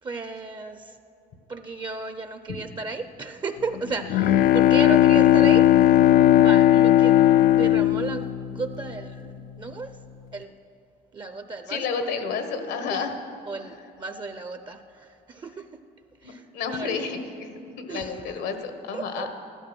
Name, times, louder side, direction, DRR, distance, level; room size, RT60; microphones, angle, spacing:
voice 1, 0.0-1.0 1.5-6.0 6.3-10.0 10.3-10.5 11.1-12.0 12.9-13.0 13.5-15.7 16.2-16.9 17.9-18.2 18.9-19.3, right 3 dB, 25° right, 9 dB, 0.6 m, -34 dB
Bowed string instrument, 3.8-9.2, left 12 dB, 60° left, 0.4 m, -17 dB
voice 2, 11.7-13.1 16.2-17.5 17.8-19.3, left 5 dB, 80° left, 7 dB, 1.5 m, -30 dB
14.0 x 11.5 x 6.2 m, 2.9 s
cardioid pair, 110°, 17 cm